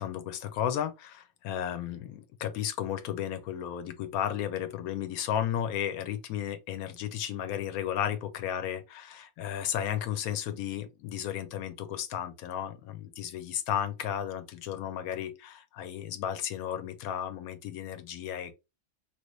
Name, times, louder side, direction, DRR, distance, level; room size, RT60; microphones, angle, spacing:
voice 1, 0.0-18.5, left 10 dB, 80° left, 1.1 m, -34 dB
3.0 x 2.5 x 3.0 m
omnidirectional pair, 1.5 m